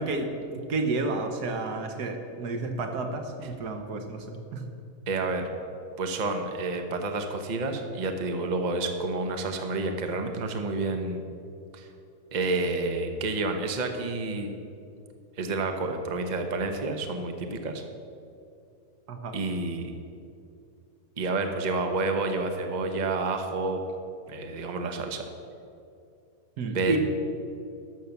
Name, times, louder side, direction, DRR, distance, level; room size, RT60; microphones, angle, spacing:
voice 1, 0.0-4.6 19.1-19.4 26.6-27.0, right 3 dB, 85° right, 5 dB, 1.7 m, -31 dB
voice 2, 5.1-5.5 6.0-11.2 11.7-11.9 12.3-14.5 15.4-17.8 19.3-19.9 21.2-23.8 24.3-25.3 26.7-27.0, right 3 dB, 35° right, 5 dB, 0.9 m, -29 dB
12.5 x 6.7 x 7.0 m, 2.6 s
omnidirectional pair, 1.7 m